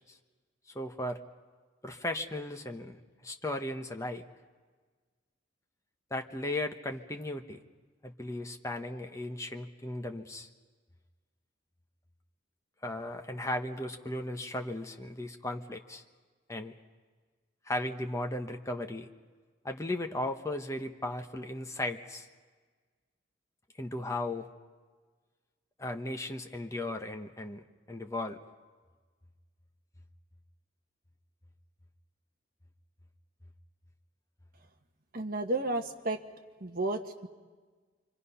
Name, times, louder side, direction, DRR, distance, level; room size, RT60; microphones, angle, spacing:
voice 1, 0.7-1.2 1.8-4.2 6.1-7.6 8.0-10.5 12.8-16.0 16.5-16.7 17.7-19.1 19.6-22.3 23.8-24.5 25.8-28.4, left 1 dB, 15° left, 4 dB, 1.0 m, -36 dB
voice 2, 35.1-36.2 36.6-37.3, right 2 dB, 50° right, 3 dB, 1.4 m, -32 dB
28.0 x 24.0 x 5.7 m, 1.4 s
head